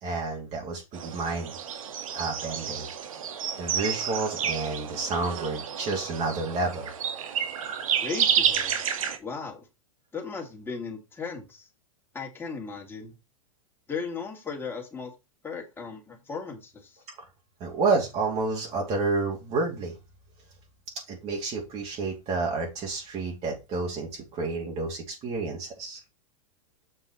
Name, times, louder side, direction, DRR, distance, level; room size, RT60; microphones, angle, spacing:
voice 1, 0.0-1.5 2.1-2.9 3.6-6.9 17.6-19.9 21.1-26.0, right 3 dB, 35° right, 2.6 m, -30 dB
sound 1, 0.9-9.2, right 8 dB, 75° right, 1.7 m, -30 dB
voice 2, 8.0-8.8 9.2-9.7 10.1-11.7 12.1-13.1 13.9-15.1 15.4-17.0, left 5 dB, 15° left, 2.7 m, -36 dB
7.7 x 5.3 x 4.3 m
hypercardioid pair, 115°, 18 cm